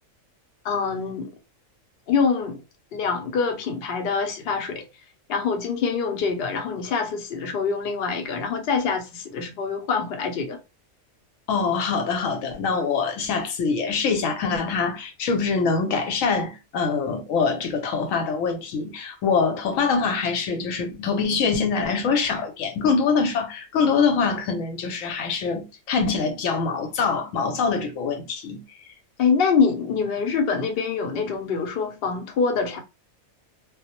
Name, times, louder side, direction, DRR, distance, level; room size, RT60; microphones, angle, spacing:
voice 1, 0.6-1.3 2.1-2.6 2.9-4.9 5.3-10.6 29.2-32.8, left 5 dB, 55° left, 0.7 m, -25 dB
voice 2, 11.5-28.6, left 5 dB, 80° left, 1.0 m, -24 dB
2.2 x 2.0 x 2.7 m
omnidirectional pair, 1.4 m